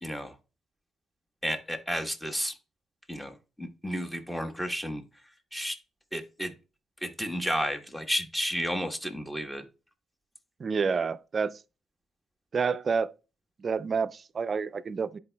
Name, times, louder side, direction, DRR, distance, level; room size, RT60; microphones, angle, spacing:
voice 1, 0.0-0.4 1.4-2.6 3.1-5.0 5.5-5.8 6.1-6.5 7.0-9.6, equal, 5° left, 1.1 m, -32 dB
voice 2, 10.6-11.6 12.5-13.1 13.6-15.2, right 5 dB, 40° right, 0.4 m, -29 dB
10.5 x 4.6 x 2.2 m
cardioid pair, 105°, 0 cm